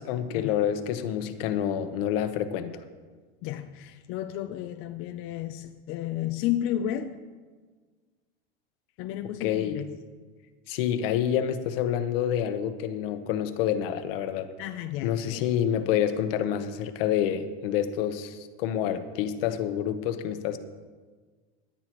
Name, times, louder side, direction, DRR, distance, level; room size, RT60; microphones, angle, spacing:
voice 1, 0.0-2.8 9.4-9.8 10.7-14.5 15.0-20.6, left 10 dB, 65° left, 9 dB, 1.1 m, -28 dB
voice 2, 3.4-7.2 9.0-9.9 14.6-15.4, left 11 dB, 45° left, 7 dB, 0.6 m, -32 dB
17.0 x 10.5 x 3.1 m, 1.5 s
supercardioid pair, 140°, 31 cm